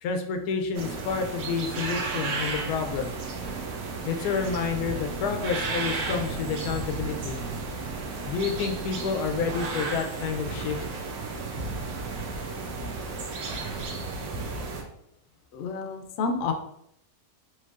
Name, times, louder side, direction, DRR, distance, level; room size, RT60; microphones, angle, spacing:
voice 1, 0.0-3.1 4.0-7.4 8.3-10.8, left 5 dB, 90° left, 5 dB, 1.1 m, -29 dB
sound 1, 0.7-14.8, right 3 dB, 75° right, 1.1 m, -33 dB
voice 2, 15.5-16.5, left 4 dB, 65° left, 5 dB, 0.7 m, -29 dB
4.3 x 3.1 x 2.4 m, 0.72 s
omnidirectional pair, 1.6 m